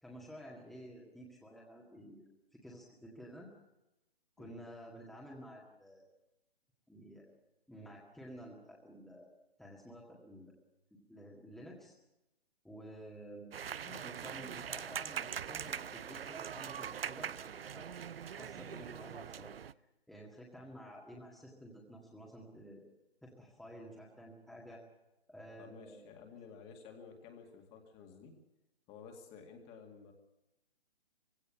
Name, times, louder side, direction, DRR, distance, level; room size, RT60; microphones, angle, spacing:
voice 1, 0.0-2.2 2.6-3.5 4.4-6.1 6.9-7.3 7.7-9.3 9.6-10.5 11.1-11.9 12.6-13.5 13.8-18.0 18.4-19.6 20.1-22.8 23.2-24.8 25.3-26.1, equal, ahead, -3 dB, 1.9 m, -52 dB
sound 1, 13.5-19.7, right 8 dB, 65° right, 0.7 m, -42 dB
voice 2, 25.6-28.4 28.9-30.1, left 5 dB, 20° left, 4 dB, 2.3 m, -53 dB
20.5 x 16.5 x 8.5 m, 0.93 s
hypercardioid pair, 145°, 31 cm